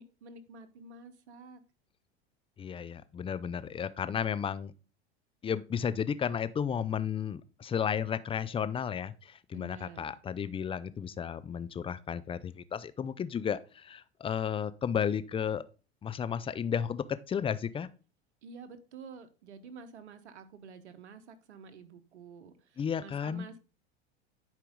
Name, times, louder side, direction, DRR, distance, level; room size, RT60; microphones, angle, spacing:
voice 1, 0.0-1.6 9.5-10.1 18.4-23.6, right 5 dB, 85° right, 1.2 m, -49 dB
voice 2, 2.6-4.7 5.4-15.6 16.0-17.9 22.8-23.4, left 7 dB, 15° left, 0.5 m, -33 dB
10.5 x 4.6 x 3.7 m
hypercardioid pair, 105°, 33 cm